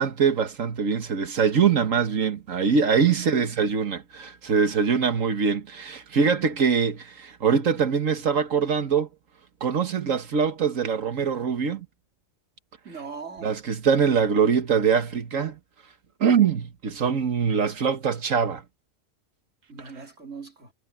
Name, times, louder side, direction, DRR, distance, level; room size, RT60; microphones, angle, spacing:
voice 1, 0.0-9.1 9.6-11.9 13.4-15.6 16.2-18.6, right 6 dB, 85° right, 1.7 m, -23 dB
voice 2, 3.0-3.6 12.8-13.6 19.7-20.7, right 5 dB, 65° right, 4.3 m, -40 dB
omnidirectional pair, 1.3 m